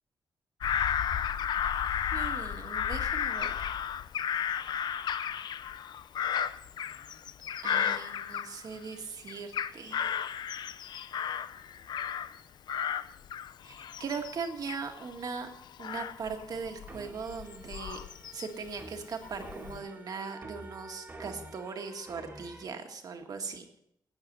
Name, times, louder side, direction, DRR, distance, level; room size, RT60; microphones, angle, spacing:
Bird vocalization bird call bird song / Crow, 0.6-8.9 9.3-12.4 12.7-18.7 19.2-19.8, left 8 dB, 65° left, 0.5 m, -33 dB
voice 1, 2.1-3.5 7.6-10.0 13.6-15.5 15.8-18.0 18.3-23.6, right 5 dB, 55° right, 4 dB, 1.7 m, -39 dB
sound 1, 16.9-22.6, right 2 dB, 25° right, 1.9 m, -48 dB
15.0 x 9.2 x 5.4 m, 0.74 s
wide cardioid pair, 155°, 8 cm